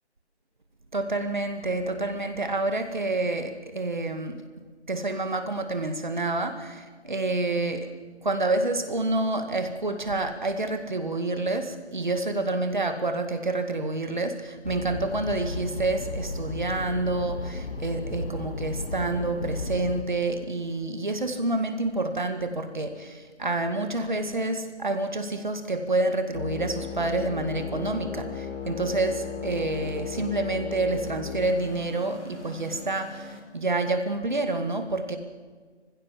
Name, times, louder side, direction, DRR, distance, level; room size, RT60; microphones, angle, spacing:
voice 1, 0.9-4.4 4.9-7.9 8.2-35.2, right 2 dB, 40° right, 7 dB, 2.0 m, -28 dB
sound 1, 14.6-20.0, left 2 dB, 55° left, 1.9 m, -34 dB
sound 2, 26.3-33.4, left 6 dB, 90° left, 4.3 m, -36 dB
24.5 x 15.5 x 7.4 m, 1.5 s
figure-of-eight pair, 175°, 34 cm